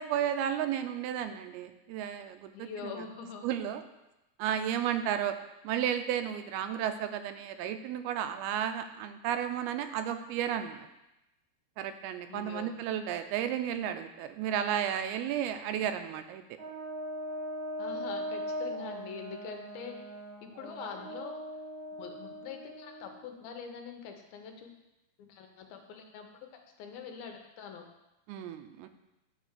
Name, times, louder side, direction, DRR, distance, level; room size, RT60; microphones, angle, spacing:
voice 1, 0.0-2.9 3.4-3.8 4.4-5.4 5.6-10.9 11.8-16.4 28.3-28.9, right 9 dB, 85° right, 8 dB, 2.5 m, -33 dB
voice 2, 2.5-3.4 12.3-12.7 17.8-20.0 20.4-21.4 22.0-24.8 25.2-26.5 26.8-27.8, left 6 dB, 80° left, 4 dB, 2.6 m, -44 dB
Brass instrument, 16.6-23.3, equal, 50° right, 2.3 m, -40 dB
9.2 x 3.3 x 6.5 m, 0.94 s
omnidirectional pair, 4.4 m